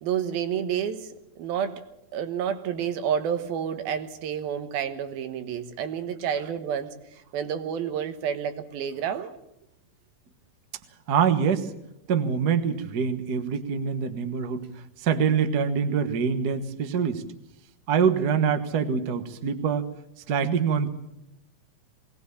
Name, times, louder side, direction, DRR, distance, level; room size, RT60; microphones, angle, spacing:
voice 1, 0.0-1.8 2.1-9.3, right 8 dB, 90° right, 8 dB, 3.2 m, -30 dB
voice 2, 11.1-11.7 12.1-14.6 15.0-17.2 17.9-19.9 20.3-20.9, right 6 dB, 65° right, 8 dB, 0.9 m, -24 dB
21.0 x 18.5 x 7.1 m, 0.84 s
omnidirectional pair, 4.1 m